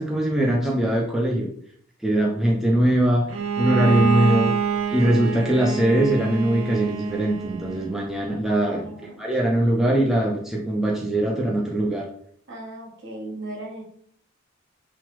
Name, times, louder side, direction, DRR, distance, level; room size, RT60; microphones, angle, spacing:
voice 1, 0.0-1.5 2.0-3.3 3.6-4.5 4.9-8.9 9.2-12.1, right 1 dB, ahead, -2 dB, 0.3 m, -21 dB
Bowed string instrument, 3.3-8.0, right 6 dB, 85° right, 0.4 m, -26 dB
voice 2, 8.6-9.4 10.5-10.6 12.5-13.8, right 2 dB, 60° right, -2 dB, 0.9 m, -37 dB
3.0 x 2.0 x 2.9 m, 0.62 s
head